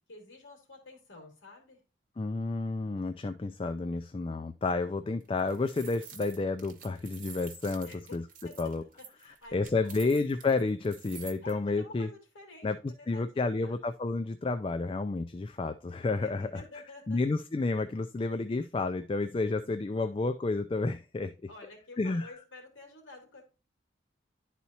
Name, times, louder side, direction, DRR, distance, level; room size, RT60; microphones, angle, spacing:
voice 1, 0.1-1.8 7.8-8.7 9.0-10.0 11.4-12.7 13.0-13.8 16.2-17.2 21.5-23.4, left 2 dB, 80° left, 2 dB, 2.6 m, -50 dB
voice 2, 2.2-8.2 8.6-8.8 9.5-12.1 12.6-12.8 13.1-16.6 17.1-21.3 22.0-22.3, left 3 dB, 25° left, 9 dB, 0.3 m, -30 dB
sound 1, 5.2-11.5, right 8 dB, 45° right, 1.1 m, -49 dB
11.0 x 4.2 x 2.8 m, 0.33 s
head